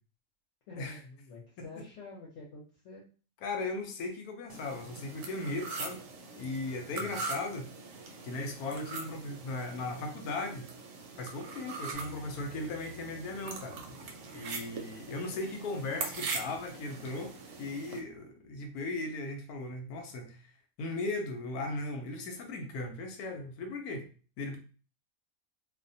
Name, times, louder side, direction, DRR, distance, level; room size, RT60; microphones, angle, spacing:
voice 1, 0.7-3.1 6.9-7.2 15.3-15.6, left 3 dB, 60° left, -4 dB, 0.8 m, -48 dB
voice 2, 3.4-6.0 6.4-7.7 8.2-10.7 11.2-13.8 14.3-20.4 20.8-24.1 24.4-24.6, left 2 dB, 85° left, 4 dB, 1.1 m, -37 dB
sound 1, 4.5-18.0, right 4 dB, 70° right, 0.9 m, -42 dB
Bass guitar, 11.9-18.2, left 2 dB, 30° left, 0.9 m, -57 dB
2.5 x 2.1 x 2.6 m, 0.37 s
omnidirectional pair, 1.6 m